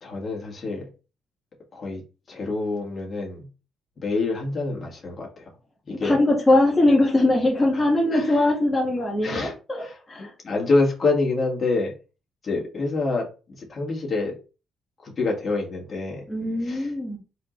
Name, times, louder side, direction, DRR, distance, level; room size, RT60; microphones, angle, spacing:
voice 1, 0.0-0.9 1.7-2.0 2.3-3.5 4.0-5.4 5.9-6.2 8.1-8.4 9.2-11.9 12.4-13.3 13.6-14.3 15.0-16.2 16.6-16.9, left 3 dB, 40° left, -1 dB, 2.0 m, -26 dB
voice 2, 5.9-10.3 16.3-17.2, left 1 dB, 15° left, -4 dB, 1.6 m, -21 dB
4.2 x 3.9 x 3.2 m, 0.32 s
cardioid pair, 90°, 0 cm